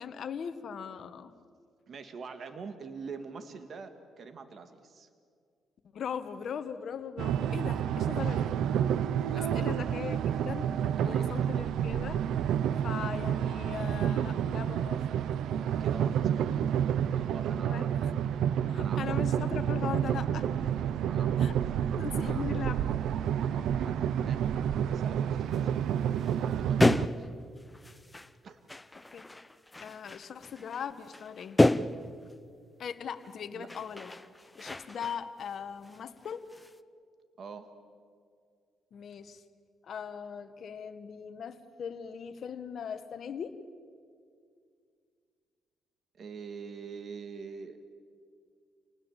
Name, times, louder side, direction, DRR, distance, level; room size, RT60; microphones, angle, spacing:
voice 1, 0.0-1.3 5.9-8.5 9.4-10.7 11.0-12.3 12.8-15.0 17.7-18.1 18.7-20.5 21.4-21.5 22.0-22.8 29.1-29.2 29.8-31.6 32.8-34.1 34.6-36.5 38.9-39.4 39.8-43.6, left 7 dB, 60° left, 10 dB, 1.5 m, -39 dB
voice 2, 1.9-5.1 9.3-9.7 11.0-11.7 15.8-16.7 17.1-17.9 18.8-19.2 21.1-21.5 22.2-22.5 23.4-27.3 28.4-28.6 33.5-33.7 37.4-37.7 46.1-47.8, right 5 dB, 50° right, 9 dB, 1.9 m, -45 dB
sound 1, 7.2-27.1, right 9 dB, 80° right, 0.7 m, -29 dB
sound 2, 25.5-25.6 26.0-28.3 28.7-32.3 33.2-33.4 33.7-35.6 35.8-36.8, left 2 dB, 15° left, 0.7 m, -31 dB
28.5 x 19.5 x 7.4 m, 2.2 s
cardioid pair, 90°, 0 cm